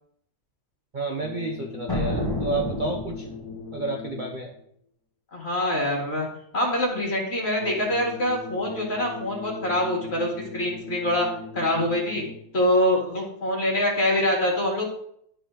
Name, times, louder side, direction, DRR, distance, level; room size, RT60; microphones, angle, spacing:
voice 1, 0.9-3.3 3.7-4.5, right 2 dB, 45° right, 2 dB, 0.7 m, -30 dB
sound 1, 1.2-4.6 7.6-12.6, left 5 dB, 80° left, 1.3 m, -39 dB
sound 2, 1.9-3.6, left 1 dB, 15° left, 1.5 m, -29 dB
voice 2, 5.3-6.3 6.5-11.3 11.5-12.2 12.5-14.9, left 1 dB, 40° left, -1 dB, 2.2 m, -24 dB
11.5 x 4.2 x 3.8 m, 0.69 s
omnidirectional pair, 1.7 m